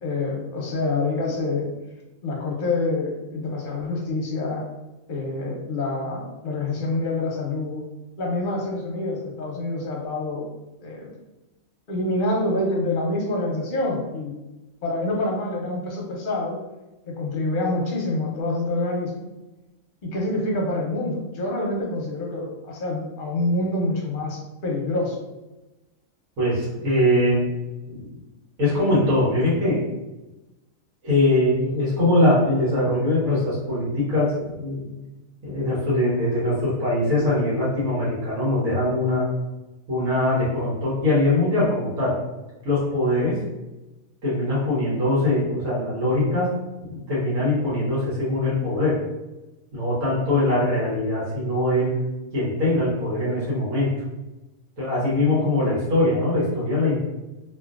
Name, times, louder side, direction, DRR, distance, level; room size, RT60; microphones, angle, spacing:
voice 1, 0.0-1.7 2.2-4.6 5.1-7.9 8.2-10.4 10.8-11.1 11.9-14.3 14.8-16.6 17.1-19.3 20.0-25.2, left 2 dB, 50° left, -2 dB, 0.7 m, -26 dB
voice 2, 26.4-27.4 27.9-28.1 28.6-29.8 31.0-34.9 35.4-39.2 39.9-42.1 42.6-43.3 44.2-46.5 46.8-49.0 49.7-51.9 52.3-53.9 54.8-57.0, left 1 dB, 75° right, -8 dB, 1.5 m, -22 dB
3.0 x 2.5 x 2.4 m, 1.0 s
omnidirectional pair, 1.4 m